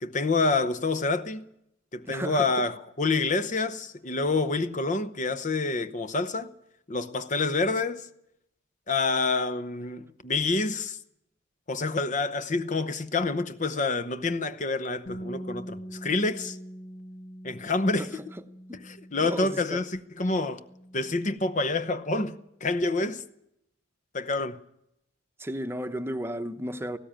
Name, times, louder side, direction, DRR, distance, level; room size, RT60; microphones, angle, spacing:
voice 1, 0.0-1.5 1.9-6.5 6.9-8.1 8.9-11.0 11.7-16.6 17.4-18.1 18.8-20.6 20.9-23.2 24.1-24.6, left 3 dB, 35° left, 0.8 m, -27 dB
voice 2, 2.1-2.7 18.0-18.1 18.4-18.8 19.2-19.8 25.4-27.0, equal, 10° right, 0.9 m, -34 dB
Bass guitar, 15.1-21.3, equal, 60° left, 4.0 m, -43 dB
18.5 x 16.5 x 8.9 m
head